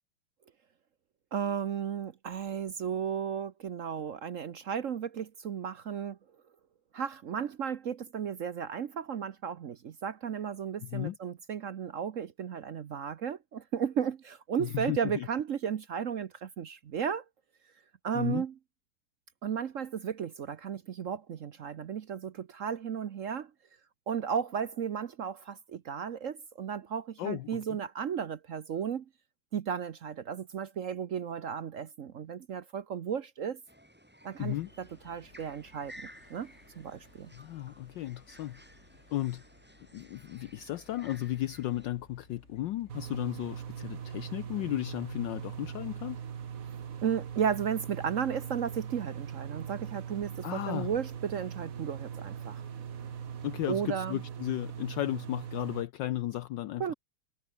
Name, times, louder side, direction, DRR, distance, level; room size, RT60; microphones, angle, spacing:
voice 1, 1.3-6.2 6.9-17.2 18.0-18.5 19.4-23.5 24.1-29.0 29.5-33.6 34.2-35.9 36.3-37.3 46.7-52.6 53.7-54.2 56.8-56.9, right 7 dB, 65° right, 0.8 m, -34 dB
voice 2, 10.8-11.2 14.6-15.3 18.1-18.4 27.2-27.8 34.4-34.7 37.3-38.6 39.1-39.4 39.9-46.2 50.4-50.9 53.4-56.9, left 14 dB, 70° left, 1.2 m, -34 dB
sound 1, 33.7-41.9, equal, 5° right, 5.3 m, -55 dB
sound 2, 34.4-53.6, left 2 dB, 30° left, 5.1 m, -59 dB
sound 3, 42.9-55.8, right 8 dB, 45° right, 1.3 m, -41 dB
omnidirectional pair, 2.4 m